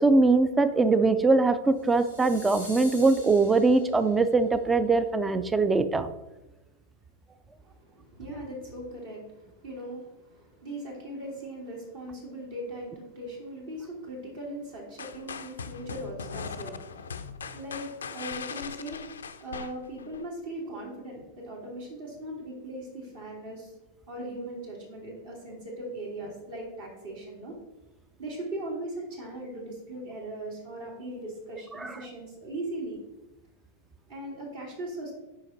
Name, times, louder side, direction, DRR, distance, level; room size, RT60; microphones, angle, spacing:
voice 1, 0.0-6.1 31.8-31.9, right 3 dB, 15° right, 12 dB, 0.5 m, -22 dB
sound 1, 1.8-4.3, left 1 dB, 90° right, 2.0 m, -45 dB
voice 2, 7.7-17.2 17.5-23.7 24.1-27.6 28.2-33.0 34.1-35.1, right 1 dB, 55° right, -3 dB, 2.5 m, -39 dB
sound 2, 15.0-20.2, left 6 dB, 70° left, 0.4 m, -39 dB
6.5 x 5.0 x 4.2 m, 1.0 s
figure-of-eight pair, 90°, 0 cm